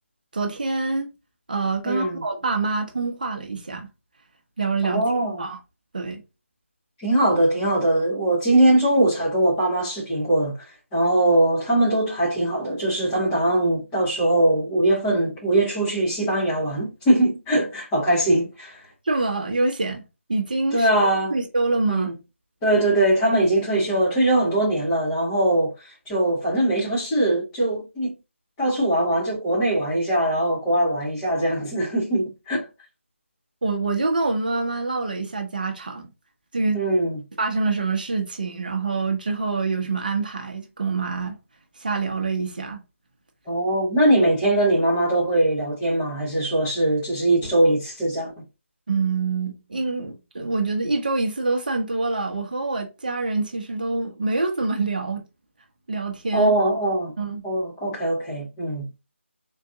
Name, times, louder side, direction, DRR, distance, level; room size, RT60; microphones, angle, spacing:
voice 1, 0.3-1.1 1.5-3.9 4.6-5.0 5.4-5.6 5.9-6.2 19.0-20.0 20.3-20.9 21.3-22.1 33.6-36.1 36.5-36.8 37.4-41.4 41.8-42.8 48.9-55.2 55.9-56.5 57.2-57.4, right 3 dB, 40° right, 0.8 m, -25 dB
voice 2, 1.8-2.2 4.8-5.4 7.0-10.5 10.9-18.8 20.7-21.3 21.9-22.1 22.6-28.1 28.6-32.7 36.7-37.2 43.5-48.3 56.3-57.1 57.4-58.9, right 1 dB, 10° left, 0.7 m, -21 dB
3.8 x 2.5 x 2.6 m
figure-of-eight pair, 155°, 7 cm